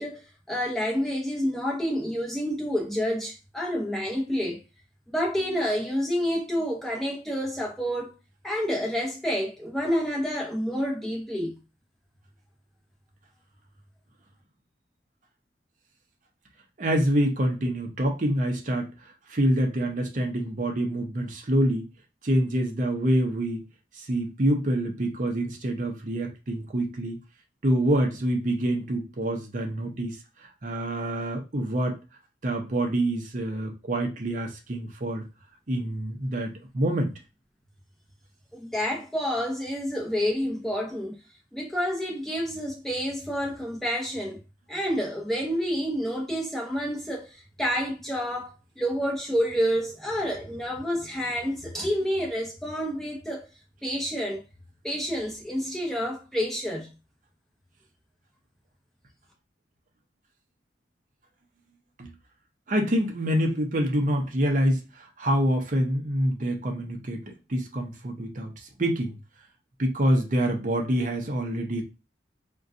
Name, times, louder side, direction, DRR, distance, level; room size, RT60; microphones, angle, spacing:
voice 1, 0.0-4.6 5.1-8.1 8.4-11.6 38.5-41.2 41.5-44.4 44.7-53.5 53.8-54.4 54.8-56.9, equal, ahead, 0.7 m, -29 dB
voice 2, 16.8-21.9 22.2-23.6 23.9-27.2 27.6-32.0 32.4-35.3 35.7-37.1 62.0-62.1 62.7-69.2 69.8-71.8, right 1 dB, 45° right, 0.6 m, -26 dB
3.7 x 2.2 x 2.5 m
head